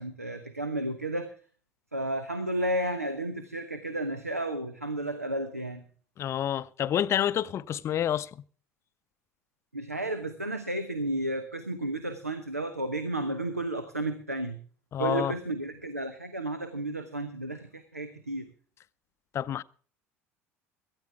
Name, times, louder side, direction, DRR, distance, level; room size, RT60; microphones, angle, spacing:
voice 1, 0.0-1.3 1.9-5.8 9.7-14.6 15.0-18.5, right 1 dB, 85° right, 1.0 m, -32 dB
voice 2, 6.2-8.3 14.9-15.3 19.3-19.6, left 10 dB, 35° left, 0.6 m, -28 dB
17.5 x 13.5 x 3.5 m
figure-of-eight pair, 65°, 8 cm